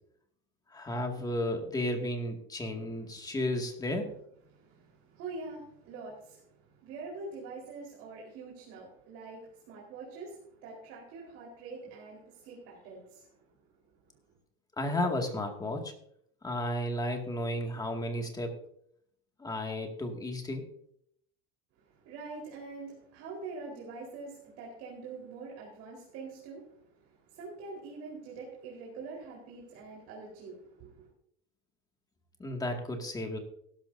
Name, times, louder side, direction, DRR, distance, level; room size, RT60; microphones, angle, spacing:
voice 1, 0.7-4.1 14.8-15.9 16.4-18.6 19.4-20.6 32.4-33.4, left 1 dB, 15° left, 2 dB, 2.1 m, -33 dB
voice 2, 4.5-13.4 22.0-26.6 26.9-31.1, right 3 dB, 60° right, -3 dB, 4.2 m, -45 dB
16.5 x 12.5 x 2.7 m, 0.70 s
cardioid pair, 150°, 29 cm